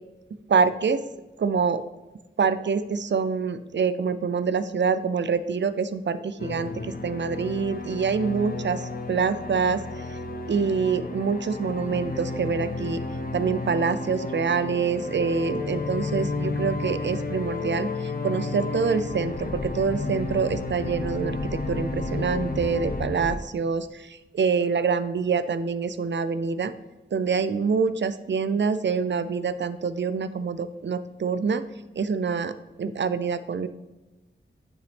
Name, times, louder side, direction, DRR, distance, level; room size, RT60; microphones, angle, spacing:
voice 1, 0.5-1.0 1.4-1.8 2.4-10.2 10.5-13.0 13.3-26.7 27.1-31.6 32.0-32.5 32.8-33.7, right 5 dB, 60° right, 12 dB, 0.4 m, -26 dB
sound 1, 6.4-23.4, left 3 dB, 45° left, 0.7 m, -32 dB
9.4 x 4.0 x 3.4 m, 1.1 s
wide cardioid pair, 75°, 21 cm